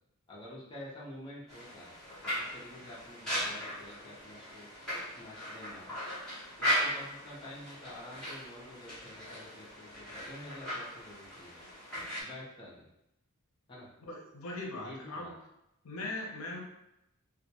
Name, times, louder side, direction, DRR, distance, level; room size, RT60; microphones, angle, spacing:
voice 1, 0.3-1.9 2.2-6.0 6.6-11.6 12.2-12.9 13.7-13.9 14.8-15.3, left 1 dB, 20° left, -6 dB, 0.5 m, -49 dB
sound 1, 1.5-12.2, equal, 5° left, 0.9 m, -38 dB
voice 2, 14.0-15.4 15.8-16.6, left 2 dB, 70° left, 0 dB, 0.6 m, -40 dB
2.2 x 2.1 x 2.7 m, 0.84 s
head